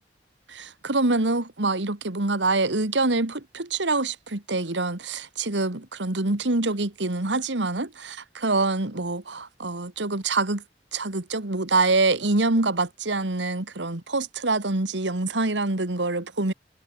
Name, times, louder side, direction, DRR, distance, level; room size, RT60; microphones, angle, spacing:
voice 1, 0.5-10.6 10.9-16.5, right 3 dB, 90° right, 2.0 m, -25 dB
head